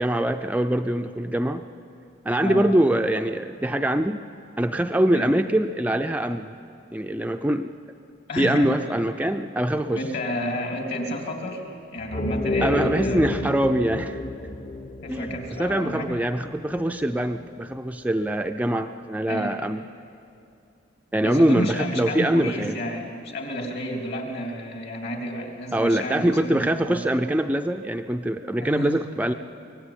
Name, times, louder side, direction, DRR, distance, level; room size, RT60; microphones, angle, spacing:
voice 1, 0.0-1.6 2.3-4.2 4.6-6.5 6.9-7.7 8.4-10.0 12.6-14.2 15.1-15.3 15.6-19.8 21.1-22.8 25.7-29.3, right 1 dB, 10° right, 6 dB, 0.4 m, -23 dB
voice 2, 2.4-2.7 5.1-5.3 8.3-8.8 9.9-11.6 11.9-13.3 15.0-16.2 19.3-19.7 21.2-27.2 28.6-28.9, left 1 dB, 55° left, 2 dB, 3.4 m, -31 dB
sound 1, 12.0-16.8, left 1 dB, 40° left, 1.1 m, -30 dB
24.0 x 18.0 x 8.9 m, 2.6 s
head